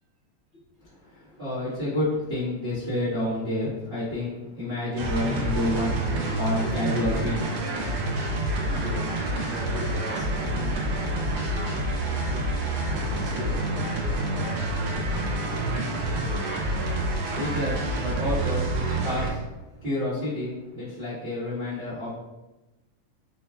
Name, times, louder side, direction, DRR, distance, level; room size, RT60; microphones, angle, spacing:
voice 1, 0.5-1.5 8.7-12.4 12.9-15.2 15.5-16.5 17.1-17.3, left 2 dB, 50° left, -11 dB, 0.8 m, -41 dB
voice 2, 1.1-6.0 6.4-7.5 17.3-19.4 19.8-22.1, left 1 dB, 40° right, -12 dB, 0.7 m, -29 dB
sound 1, 5.0-19.3, right 1 dB, 80° right, 1.4 m, -28 dB
5.4 x 2.3 x 3.4 m, 1.0 s
omnidirectional pair, 3.6 m